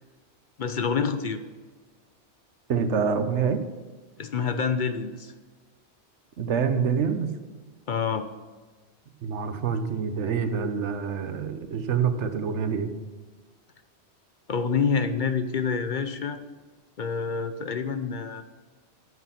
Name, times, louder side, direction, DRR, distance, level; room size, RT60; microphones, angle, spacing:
voice 1, 0.6-1.4 4.2-5.3 7.9-8.3 14.5-16.4 17.0-18.4, left 5 dB, 50° left, 10 dB, 0.7 m, -27 dB
voice 2, 2.7-3.6 6.4-7.3 9.2-12.9, right 6 dB, 85° right, 10 dB, 1.2 m, -26 dB
9.7 x 8.0 x 5.7 m, 1.4 s
omnidirectional pair, 1.2 m